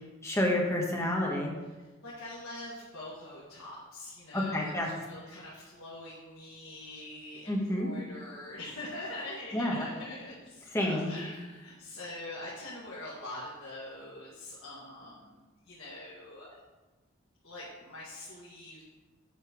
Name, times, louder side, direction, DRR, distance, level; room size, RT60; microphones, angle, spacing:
voice 1, 0.2-1.5 4.3-4.9 7.5-7.9 9.5-9.9 10.7-11.1, left 1 dB, 15° left, -1 dB, 1.3 m, -29 dB
voice 2, 1.8-16.5 17.4-18.8, left 1 dB, 75° left, -7 dB, 1.8 m, -44 dB
8.3 x 4.2 x 6.1 m, 1.2 s
head